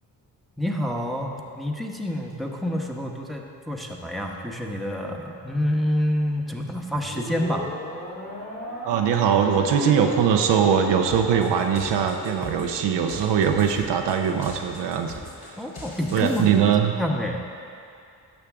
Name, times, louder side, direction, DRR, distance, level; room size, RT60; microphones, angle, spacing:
voice 1, 0.6-7.7 15.6-16.7 17.0-17.4, left 1 dB, ahead, 0 dB, 1.1 m, -28 dB
sound 1, 6.9-13.5, equal, 20° left, 1.8 m, -38 dB
voice 2, 8.8-15.1 15.4-15.5 16.1-16.9, right 7 dB, 75° right, 4 dB, 0.7 m, -21 dB
sound 2, 11.1-16.4, left 2 dB, 60° left, 2.1 m, -41 dB
12.0 x 6.4 x 3.6 m, 2.5 s
supercardioid pair, 50°, 42 cm